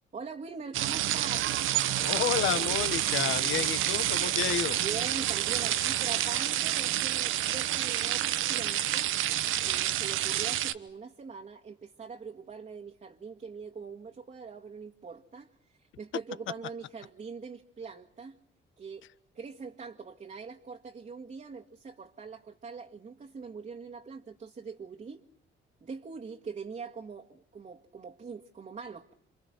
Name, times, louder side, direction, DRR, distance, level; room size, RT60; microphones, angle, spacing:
voice 1, 0.1-1.6 4.8-9.1 9.6-18.4 18.8-19.1 19.3-25.2 25.8-29.1, right 5 dB, 40° right, 1.9 m, -43 dB
sound 1, 0.7-10.7, right 13 dB, 85° right, 1.2 m, -29 dB
voice 2, 2.0-4.8, left 11 dB, 80° left, 1.3 m, -30 dB
28.5 x 27.0 x 6.1 m
cardioid pair, 90°, 20 cm